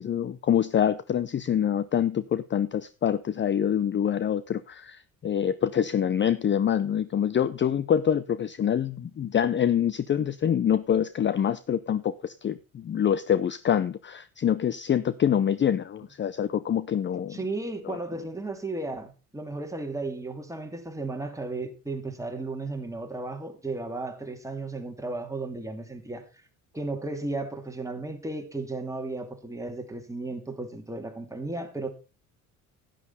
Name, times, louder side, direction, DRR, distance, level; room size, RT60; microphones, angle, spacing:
voice 1, 0.0-17.4 17.8-18.0, left 9 dB, 30° left, 0.6 m, -25 dB
voice 2, 17.3-26.2 26.7-31.9, right 2 dB, 10° right, 2.6 m, -34 dB
11.0 x 10.0 x 4.1 m
supercardioid pair, 70°, 40 cm